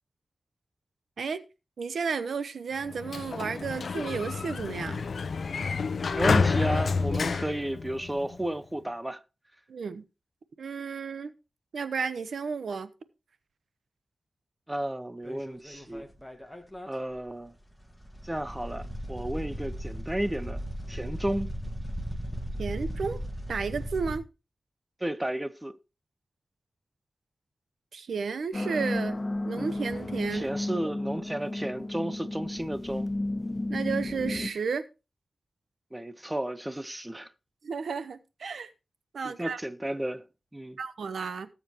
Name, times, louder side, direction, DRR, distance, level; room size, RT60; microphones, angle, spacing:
voice 1, 1.8-5.0 9.7-10.0 10.6-11.3 11.7-12.9 22.6-23.2 23.5-24.2 27.9-29.2 29.4-30.5 33.7-34.9 37.6-38.7 39.1-39.6 40.8-41.5, right 5 dB, 85° right, 0.9 m, -32 dB
Sliding door, 2.8-8.5, left 4 dB, 65° left, 0.7 m, -29 dB
voice 2, 6.1-9.2 14.7-16.1 16.9-17.5 18.2-20.6 20.9-21.5 25.0-25.7 30.3-33.1 35.9-37.3 39.2-40.3 40.5-40.8, right 1 dB, 10° right, 0.7 m, -33 dB
sound 1, 15.2-16.9 17.2-17.3 17.7-24.2, equal, 5° left, 1.7 m, -37 dB
sound 2, 28.5-34.5, left 1 dB, 30° left, 0.8 m, -32 dB
18.5 x 7.2 x 3.0 m
wide cardioid pair, 125°, 0 cm